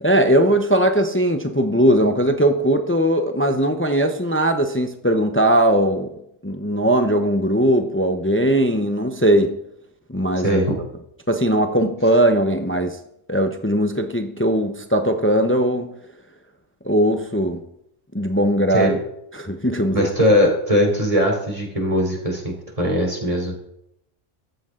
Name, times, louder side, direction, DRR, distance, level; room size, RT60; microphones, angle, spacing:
voice 1, 0.0-6.1 6.4-9.6 10.1-10.6 11.3-13.0 13.3-15.9 16.8-17.6 18.1-18.9 19.3-20.1, right 1 dB, 10° left, 0.8 m, -19 dB
voice 2, 10.4-10.8 18.7-19.0 19.9-23.6, equal, 25° right, 3.9 m, -20 dB
15.0 x 13.0 x 3.9 m
omnidirectional pair, 1.3 m